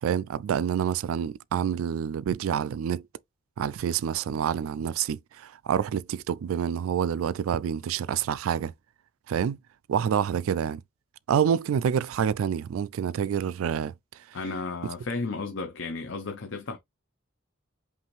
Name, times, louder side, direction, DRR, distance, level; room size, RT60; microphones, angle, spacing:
voice 1, 0.0-3.1 3.6-8.7 9.3-9.6 9.9-10.8 11.3-13.9, right 8 dB, 85° right, 0.3 m, -27 dB
voice 2, 14.3-16.8, left 3 dB, 65° left, 0.6 m, -33 dB
5.5 x 2.6 x 3.1 m
head